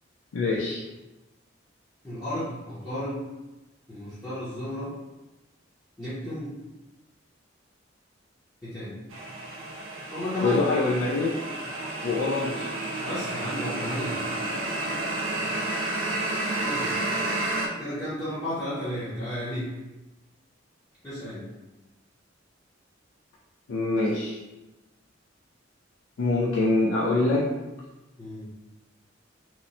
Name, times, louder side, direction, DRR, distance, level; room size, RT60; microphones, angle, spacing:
voice 1, 0.3-0.8 10.4-11.3 12.0-12.7 23.7-24.4 26.2-27.5, left 2 dB, 70° left, -4 dB, 0.4 m, -24 dB
voice 2, 2.0-3.2 3.9-4.9 6.0-6.5 8.6-9.0 10.1-10.6 13.0-14.4 16.6-17.0 17.8-19.7 21.0-21.4 28.2-28.5, left 1 dB, 15° left, -13 dB, 0.7 m, -33 dB
sound 1, 9.1-17.7, right 2 dB, 90° right, 0.4 m, -31 dB
2.9 x 2.0 x 2.6 m, 1.0 s
head